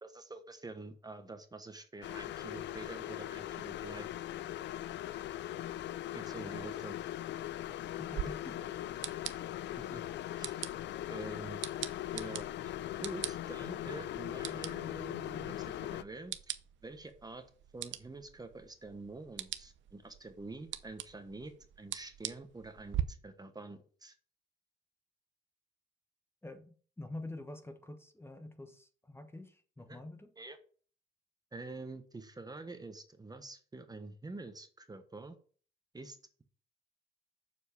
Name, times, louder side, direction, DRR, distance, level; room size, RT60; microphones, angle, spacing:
voice 1, 0.0-4.1 6.1-6.9 9.8-10.0 10.4-10.6 11.1-11.6 12.1-12.7 13.0-16.4 16.8-17.4 17.7-24.1 29.9-30.0 30.4-30.6 31.5-35.4 35.9-36.2, right 3 dB, 20° right, 8 dB, 1.1 m, -47 dB
sound 1, 2.0-16.0, left 13 dB, 65° left, 0.4 m, -40 dB
voice 2, 8.0-8.7 26.4-30.3, left 2 dB, 10° left, 7 dB, 1.1 m, -47 dB
sound 2, 8.1-23.0, right 12 dB, 70° right, 0.7 m, -44 dB
7.2 x 4.5 x 7.0 m, 0.43 s
cardioid pair, 90°, 20 cm